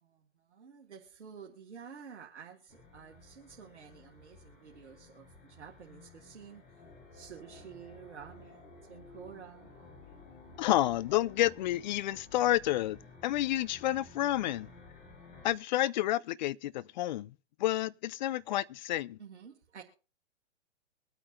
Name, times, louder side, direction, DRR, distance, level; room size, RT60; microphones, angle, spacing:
voice 1, 0.0-6.6 7.1-9.7 19.2-19.8, right 7 dB, 70° right, 2.0 m, -51 dB
sound 1, 2.7-15.6, left 3 dB, 20° left, 7.0 m, -54 dB
voice 2, 10.6-14.7 15.4-17.3 17.6-19.2, left 14 dB, 40° left, 0.5 m, -30 dB
23.5 x 9.0 x 2.7 m
hypercardioid pair, 120°, 36 cm